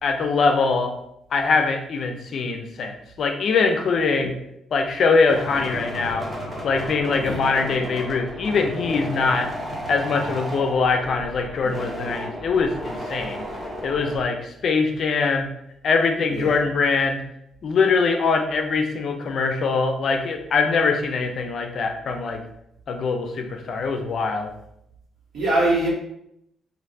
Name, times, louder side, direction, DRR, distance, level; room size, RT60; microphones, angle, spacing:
voice 1, 0.0-0.9 1.3-4.3 4.7-6.3 6.6-9.5 9.9-13.4 13.8-15.5 15.8-17.2 17.6-22.4 22.9-24.5, left 4 dB, 60° left, 5 dB, 0.4 m, -22 dB
sound 1, 5.3-14.3, equal, 5° right, 0.9 m, -33 dB
voice 2, 25.3-25.9, right 2 dB, 70° right, -5 dB, 1.3 m, -23 dB
3.1 x 2.5 x 2.6 m, 0.77 s
cardioid pair, 90°, 0 cm